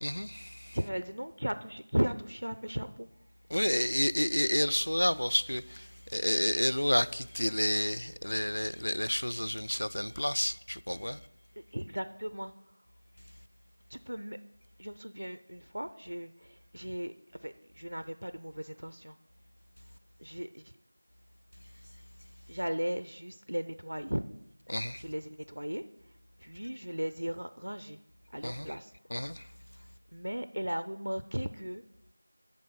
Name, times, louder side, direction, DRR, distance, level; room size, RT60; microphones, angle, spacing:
voice 1, 0.0-0.8 3.5-11.2 24.7-25.0 28.4-28.8 29.1-29.5, equal, 70° left, 0.3 m, -30 dB
voice 2, 0.7-3.1 11.6-12.5 13.9-14.4 14.8-17.1 17.4-19.2 20.2-20.7 22.5-24.2 25.0-25.8 26.4-28.0 28.3-28.9 30.1-31.8, equal, 80° right, 0.4 m, -36 dB
8.8 x 3.6 x 5.7 m
figure-of-eight pair, 180°, 0 cm